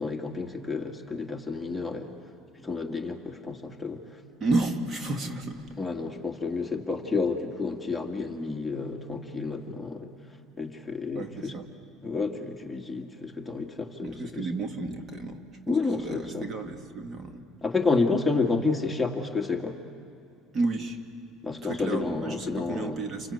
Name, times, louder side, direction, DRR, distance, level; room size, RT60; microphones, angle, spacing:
voice 1, 0.0-2.1 2.6-4.0 5.8-10.1 10.6-11.6 12.0-14.5 15.7-16.5 17.6-19.8 21.4-23.0, left 4 dB, 10° left, 1 dB, 2.0 m, -30 dB
voice 2, 4.4-5.7 11.1-11.7 14.0-15.4 15.7-17.4 20.5-21.0 21.6-23.3, right 2 dB, 35° right, 5 dB, 2.4 m, -32 dB
29.5 x 24.5 x 8.2 m, 2.7 s
supercardioid pair, 105°, 0 cm